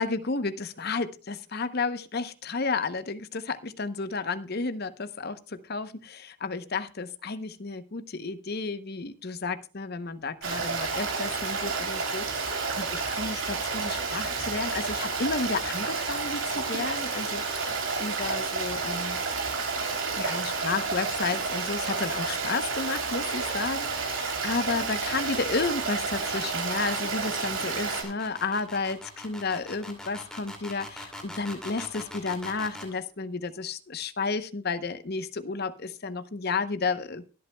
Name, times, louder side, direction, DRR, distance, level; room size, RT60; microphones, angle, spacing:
voice 1, 0.0-19.2 20.1-37.3, left 4 dB, 45° left, 12 dB, 0.8 m, -32 dB
Stream, 10.4-28.0, right 4 dB, 65° right, 3.2 m, -30 dB
sound 1, 26.9-32.9, left 1 dB, 5° left, 2.4 m, -43 dB
23.0 x 8.3 x 2.2 m, 0.35 s
head